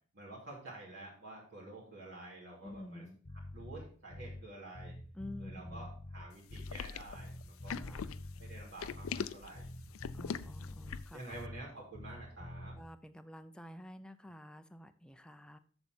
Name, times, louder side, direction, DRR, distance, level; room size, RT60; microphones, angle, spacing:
voice 1, 0.1-3.0 3.5-4.9 5.4-8.0 8.4-9.7 10.7-12.7, right 2 dB, 60° right, -6 dB, 2.7 m, -49 dB
voice 2, 2.6-3.2 5.1-5.9 7.7-8.2 10.1-11.2 12.8-15.6, left 1 dB, 5° left, 9 dB, 0.5 m, -49 dB
Bass guitar, 3.2-4.5 4.7-6.9 7.1-9.3 9.5-11.7 11.9-12.8, left 1 dB, 40° left, 1.0 m, -47 dB
sound 1, 6.5-11.2, left 6 dB, 85° left, 0.4 m, -42 dB
7.4 x 7.0 x 4.4 m, 0.43 s
head